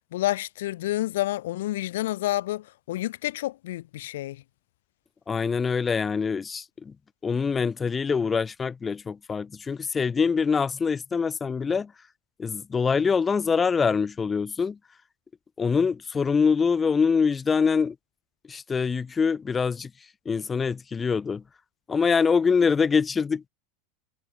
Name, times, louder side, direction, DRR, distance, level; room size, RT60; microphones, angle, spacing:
voice 1, 0.0-4.4, left 15 dB, 80° left, 2.0 m, -29 dB
voice 2, 5.3-6.9 7.2-11.9 12.4-14.8 15.6-17.9 18.5-19.9 20.2-21.4 21.9-23.5, left 5 dB, 15° left, 1.3 m, -24 dB
supercardioid pair, 145°, 0 cm